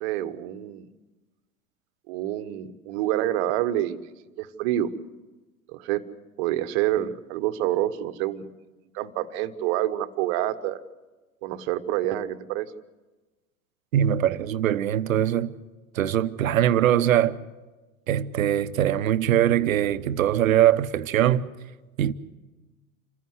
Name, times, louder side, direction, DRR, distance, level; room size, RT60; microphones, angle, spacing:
voice 1, 0.0-0.9 2.1-4.0 4.4-4.9 5.7-6.0 6.4-8.5 8.9-10.8 11.4-12.7, right 13 dB, 50° right, 1.3 m, -27 dB
voice 2, 13.9-15.5 15.9-17.4 18.1-21.5 22.0-22.1, right 11 dB, 70° right, 1.0 m, -22 dB
27.5 x 15.0 x 8.0 m
figure-of-eight pair, 90°, 42 cm